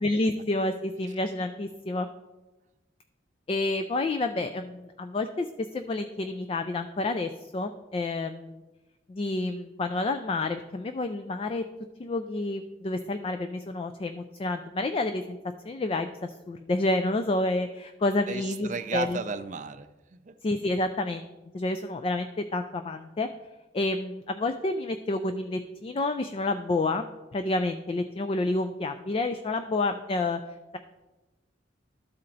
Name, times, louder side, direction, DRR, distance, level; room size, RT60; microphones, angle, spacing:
voice 1, 0.0-2.1 3.5-5.5 5.7-8.6 9.1-11.6 12.0-15.4 15.6-19.2 20.4-21.2 21.5-23.3 23.7-27.1 27.3-30.4, left 2 dB, 30° left, 8 dB, 0.3 m, -29 dB
voice 2, 18.3-20.3, right 4 dB, 45° right, 9 dB, 0.4 m, -34 dB
12.5 x 4.3 x 3.9 m, 1.1 s
head